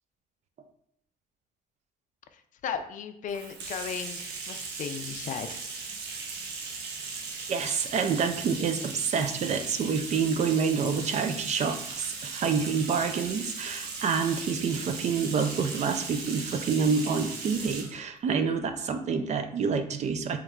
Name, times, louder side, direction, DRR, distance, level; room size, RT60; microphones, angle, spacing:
voice 1, 2.3-5.6, left 7 dB, 50° left, 8 dB, 0.4 m, -36 dB
Bathtub (filling or washing), 3.3-18.0, right 4 dB, 80° right, 0.8 m, -38 dB
voice 2, 7.5-20.4, right 5 dB, 40° right, 8 dB, 0.4 m, -28 dB
3.5 x 3.0 x 3.3 m, 0.72 s
cardioid pair, 110°, 17 cm